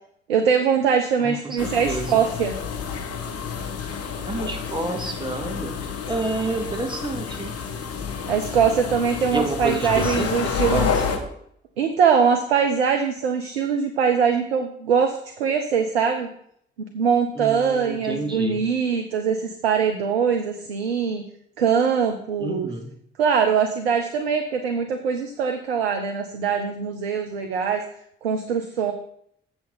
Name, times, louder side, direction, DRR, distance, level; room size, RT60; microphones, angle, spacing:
voice 1, 0.3-2.6 8.3-10.9 11.8-16.3 16.9-21.3 21.6-22.7 23.2-27.8 28.2-28.9, right 6 dB, 85° right, 5 dB, 0.6 m, -22 dB
voice 2, 1.2-2.2 4.2-7.6 9.3-11.2 17.4-18.6 22.4-22.9, right 2 dB, 15° right, 2 dB, 2.1 m, -29 dB
sound 1, 1.6-11.2, left 6 dB, 50° left, 1.3 m, -29 dB
7.6 x 6.0 x 5.5 m, 0.69 s
figure-of-eight pair, 40°, 30 cm